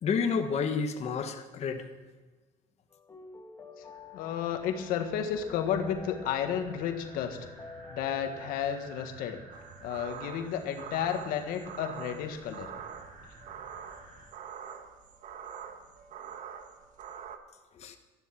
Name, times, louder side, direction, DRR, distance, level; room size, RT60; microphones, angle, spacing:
voice 1, 0.0-1.9 17.8-18.0, left 5 dB, 50° left, 5 dB, 1.3 m, -30 dB
sound 1, 2.9-9.3, left 4 dB, 20° left, 2.6 m, -50 dB
sound 2, 3.8-14.3, right 2 dB, 80° right, 4.1 m, -52 dB
voice 2, 4.1-7.4 7.9-9.4 9.8-12.7, left 8 dB, 90° left, 6 dB, 1.6 m, -32 dB
sound 3, 9.5-17.4, right 8 dB, 60° right, 1.5 m, -45 dB
13.5 x 11.5 x 5.9 m, 1.3 s
cardioid pair, 120°, 15 cm